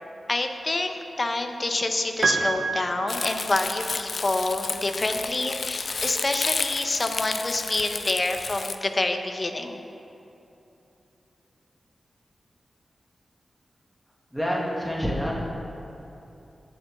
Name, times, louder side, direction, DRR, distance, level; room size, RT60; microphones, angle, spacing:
voice 1, 0.3-9.8, left 2 dB, 45° left, 5 dB, 1.0 m, -27 dB
Piano, 2.2-3.9, right 4 dB, 60° right, 1.1 m, -28 dB
Crumpling crinkling, 3.1-8.8, left 4 dB, 65° left, 0.5 m, -31 dB
voice 2, 14.3-15.3, equal, 5° right, -5 dB, 2.4 m, -27 dB
18.0 x 7.3 x 3.8 m, 2.9 s
cardioid pair, 50°, 0 cm